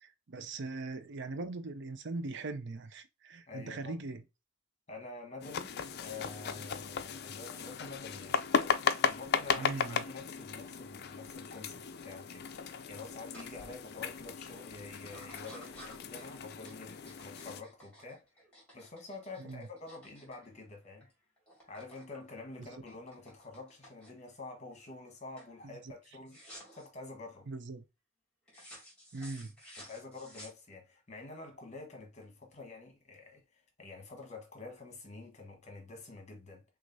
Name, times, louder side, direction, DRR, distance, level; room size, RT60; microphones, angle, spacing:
voice 1, 0.0-4.2 9.6-10.0 19.4-19.7 22.6-22.7 25.6-25.7 27.5-27.8 29.1-29.5, right 3 dB, 55° right, 0.6 m, -40 dB
voice 2, 3.5-4.0 4.9-8.4 9.0-18.2 18.7-21.1 21.7-26.4 26.7-27.5 29.8-36.6, left 3 dB, 30° left, 1.2 m, -48 dB
sound 1, 5.4-17.6, left 7 dB, 50° left, 0.4 m, -36 dB
sound 2, 13.3-13.5 14.0-14.4 15.0-21.1 21.4-22.1 22.4-24.3 24.8-25.1 25.4-25.6 26.3-26.9 28.5-31.0, equal, 5° left, 2.2 m, -54 dB
6.1 x 2.5 x 2.6 m
head